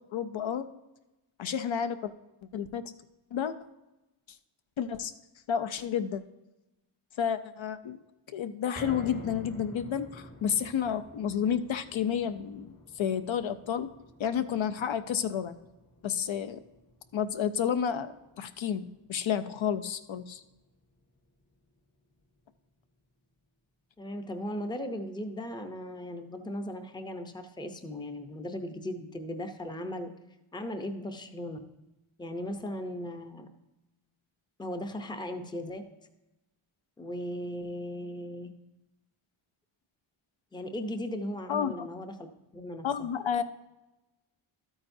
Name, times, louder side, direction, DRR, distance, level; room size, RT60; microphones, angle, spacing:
voice 1, 0.1-0.7 1.4-2.1 2.5-2.8 3.3-3.5 4.8-5.1 5.5-6.2 7.2-8.0 8.3-13.9 14.2-15.6 16.0-16.6 17.1-20.4 41.5-41.9 42.8-43.4, left 8 dB, 65° left, 10 dB, 0.6 m, -31 dB
sound 1, 8.7-21.0 21.4-21.5 21.9-22.0, left 2 dB, 40° left, 1.4 m, -50 dB
voice 2, 24.0-30.1 30.5-31.6 32.2-33.5 34.6-35.8 37.0-38.5 40.5-43.1, left 1 dB, 10° left, 7 dB, 0.5 m, -37 dB
12.5 x 8.8 x 2.6 m, 1.0 s
wide cardioid pair, 150°, 50 cm